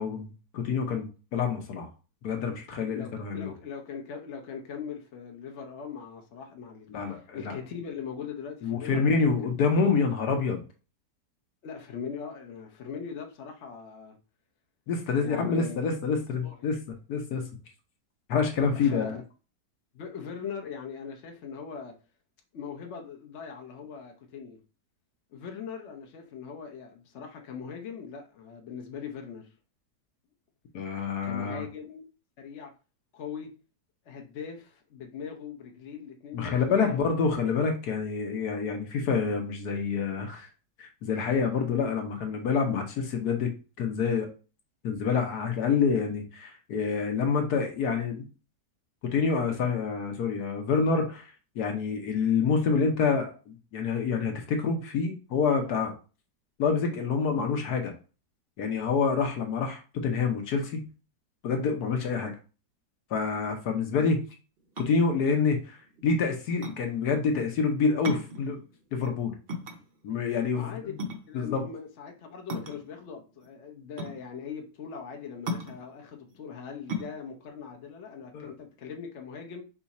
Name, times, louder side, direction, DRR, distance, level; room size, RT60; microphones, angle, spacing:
voice 1, 0.0-1.9 2.2-3.5 6.9-7.5 8.6-10.6 14.9-16.8 17.1-17.5 18.3-19.2 30.7-31.6 36.3-40.5 40.8-43.5 43.8-44.3 44.8-48.2 49.0-55.9 56.6-57.9 58.6-60.8 61.4-62.4 63.1-64.2 64.8-65.8 66.0-68.6 68.9-69.4 70.0-70.7 71.3-71.6 78.3-78.5, left 5 dB, 70° left, 1.3 m, -27 dB
voice 2, 2.9-9.5 11.6-14.2 15.2-15.9 16.4-16.7 18.7-19.2 19.9-21.9 22.5-24.6 25.3-29.5 31.2-32.0 32.4-32.7 33.1-33.5 34.1-37.1 70.6-70.9 71.3-79.6, left 6 dB, 50° left, 0.9 m, -40 dB
sound 1, 64.6-79.0, left 1 dB, 55° right, 0.6 m, -38 dB
4.8 x 2.4 x 4.1 m
omnidirectional pair, 1.8 m